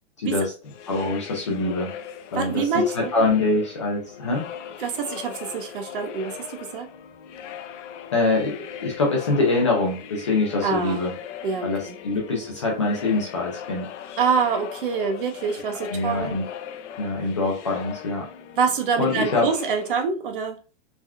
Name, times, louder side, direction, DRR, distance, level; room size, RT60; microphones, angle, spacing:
voice 1, 0.2-0.5 0.9-1.9 2.3-2.6 2.9-4.4 8.1-11.1 11.6-13.9 15.7-16.4 17.0-18.3 19.0-19.5, left 3 dB, 25° left, 0.3 m, -24 dB
sound 1, 0.6-20.0, left 9 dB, 75° left, 0.5 m, -39 dB
voice 2, 2.3-3.1 4.8-6.9 10.6-11.0 11.4-12.0 14.2-16.4 18.6-20.6, right 5 dB, 50° right, 0.6 m, -25 dB
3.4 x 2.2 x 2.3 m
supercardioid pair, 180°, 36 cm